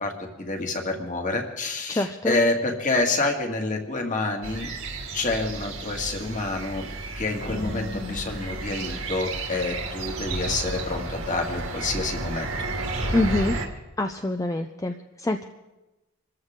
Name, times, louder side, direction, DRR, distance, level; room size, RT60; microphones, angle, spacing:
voice 1, 0.0-4.7 5.1-6.8 7.2-12.5, left 2 dB, 35° left, 2 dB, 2.1 m, -28 dB
voice 2, 1.9-2.4 13.1-13.6 14.0-15.4, left 2 dB, 15° left, 6 dB, 0.5 m, -25 dB
sound 1, 4.4-13.7, right 2 dB, 75° right, 2.3 m, -32 dB
sound 2, 7.4-9.9, left 1 dB, 60° left, 4.8 m, -37 dB
26.0 x 14.5 x 3.7 m, 1.1 s
head